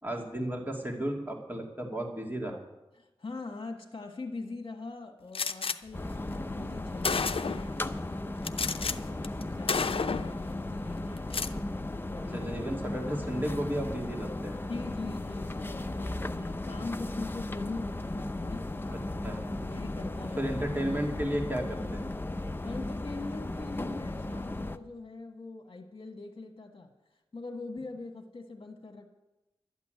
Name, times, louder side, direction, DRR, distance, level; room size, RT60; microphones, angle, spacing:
voice 1, 0.0-2.6 12.3-14.6 18.9-19.4 20.4-22.1, equal, 20° right, 1 dB, 2.4 m, -33 dB
voice 2, 3.0-7.7 8.1-11.6 12.1-12.4 14.7-19.0 19.6-20.4 22.6-26.9 27.3-29.1, left 3 dB, 55° left, 1 dB, 1.6 m, -42 dB
Gunshot gunfire, 5.3-5.8 6.6-6.7 7.0-7.7 8.4-9.0 9.2-9.4 9.7-10.4 11.2-11.5, left 5 dB, 70° left, 0.6 m, -30 dB
sound 1, 5.9-24.8, left 2 dB, 20° left, 0.7 m, -36 dB
12.5 x 8.4 x 9.2 m, 0.99 s
wide cardioid pair, 75°, 10 cm